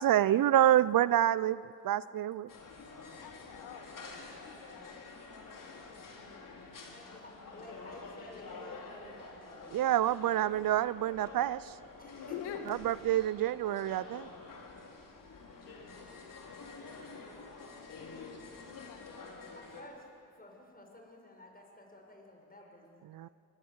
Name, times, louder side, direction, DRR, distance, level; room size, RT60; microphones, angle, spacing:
voice 1, 0.0-2.5 9.7-11.7 12.7-14.3 23.1-23.3, right 12 dB, 60° right, 18 dB, 0.6 m, -27 dB
sound 1, 2.5-19.8, left 4 dB, 55° left, 4.5 m, -49 dB
voice 2, 3.2-5.0 5.5-6.2 12.2-12.7 16.0-16.7 18.7-19.0, left 9 dB, 85° left, 6 dB, 1.8 m, -47 dB
voice 3, 6.4-9.8 10.1-10.5 12.0-12.7 13.5-13.8 19.5-20.1 20.3-23.0, left 1 dB, 20° left, 2 dB, 6.6 m, -53 dB
26.0 x 18.5 x 8.0 m, 2.5 s
supercardioid pair, 55°, 39 cm